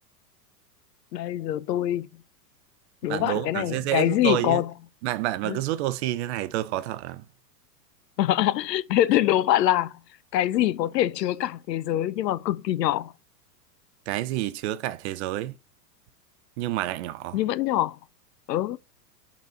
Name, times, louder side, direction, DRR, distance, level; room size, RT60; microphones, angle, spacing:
voice 1, 1.1-2.1 3.0-4.7 5.4-5.6 8.2-9.9 10.3-13.1 17.3-18.0 18.5-18.8, left 13 dB, 80° left, 0.7 m, -24 dB
voice 2, 3.1-4.6 5.0-7.2 14.1-15.6 16.6-17.4, right 14 dB, 45° right, 0.6 m, -29 dB
8.0 x 4.1 x 4.4 m
hypercardioid pair, 130°, 49 cm